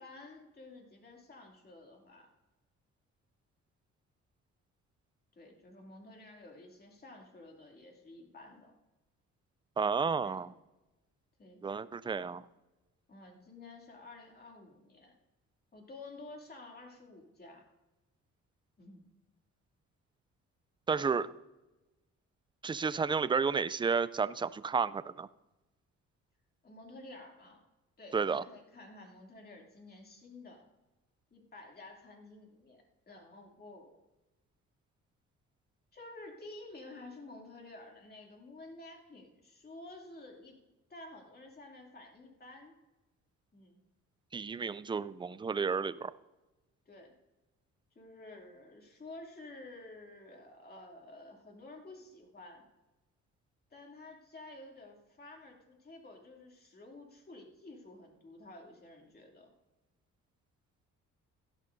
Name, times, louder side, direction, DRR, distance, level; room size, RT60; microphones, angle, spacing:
voice 1, 0.0-2.3 5.4-8.7 9.9-10.4 11.4-11.6 13.1-15.1 15.7-17.6 18.8-19.0 26.6-27.6 28.0-30.6 31.3-34.0 35.9-40.6 40.9-42.7 43.5-43.8 46.9-47.1 47.9-52.6 53.7-59.5, left 2 dB, 30° left, 1 dB, 2.7 m, -51 dB
voice 2, 9.8-10.5 11.6-12.4 20.9-21.3 22.6-25.3 28.1-28.4 44.3-46.1, right 5 dB, 15° right, 17 dB, 0.3 m, -31 dB
16.0 x 12.0 x 2.7 m, 1.1 s
cardioid pair, 90°, 30 cm